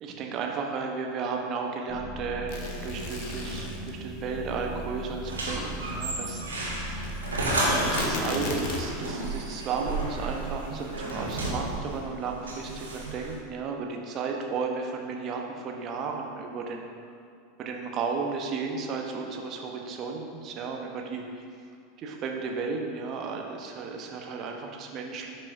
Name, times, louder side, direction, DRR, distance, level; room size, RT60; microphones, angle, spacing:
voice 1, 0.0-2.6 2.8-6.4 7.6-16.9 17.6-21.4 22.0-25.3, right 5 dB, 40° right, 2 dB, 1.0 m, -34 dB
sound 1, 1.9-7.9, right 1 dB, ahead, 1.2 m, -39 dB
sound 2, 2.5-3.9 7.0-9.1 9.7-9.8 10.0-10.1 11.1-11.5, left 2 dB, 55° left, 1.1 m, -34 dB
sound 3, 5.2-13.4, right 2 dB, 75° right, 1.7 m, -32 dB
12.0 x 5.4 x 2.6 m, 2.3 s
figure-of-eight pair, 80°, 0 cm